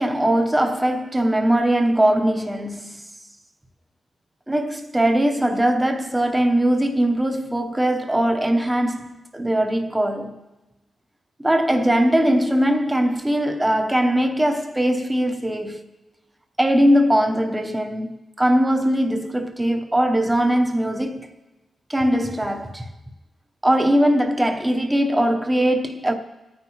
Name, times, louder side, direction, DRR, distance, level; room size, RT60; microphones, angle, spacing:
voice 1, 0.0-3.1 4.5-10.4 11.4-15.8 16.6-21.3 21.9-22.9 23.6-26.1, right 1 dB, 10° right, 0.9 m, -20 dB
26.0 x 9.4 x 3.1 m
wide cardioid pair, 145°, 0 cm